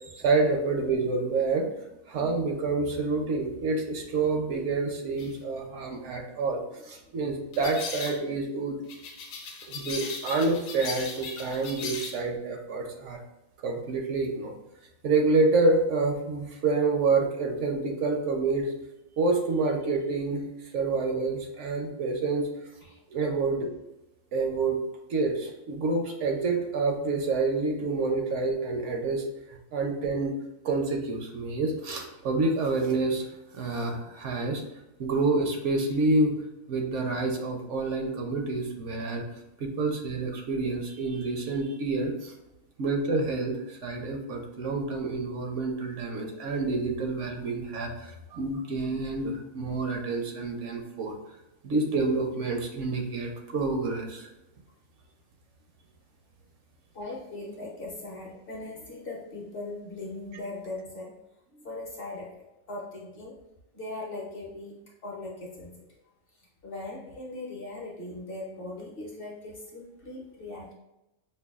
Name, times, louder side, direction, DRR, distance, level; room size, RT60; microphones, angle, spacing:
voice 1, 0.0-1.7 2.1-8.8 9.7-13.2 13.6-14.5 15.0-18.7 19.2-20.5 20.7-22.5 23.1-23.7 24.3-24.8 25.1-30.4 30.6-33.2 33.5-34.6 35.0-36.4 36.7-39.2 39.6-42.3 42.8-51.1 51.6-54.3, right 3 dB, 70° right, 2 dB, 0.9 m, -28 dB
sound 1, 5.2-5.3 7.5-8.2 8.9-12.2, left 4 dB, 90° left, 1.0 m, -38 dB
voice 2, 56.9-61.2 61.5-62.4 62.7-63.4 63.7-65.8 66.3-70.7, left 2 dB, 50° left, -2 dB, 0.8 m, -39 dB
5.3 x 2.2 x 2.3 m, 0.95 s
omnidirectional pair, 1.4 m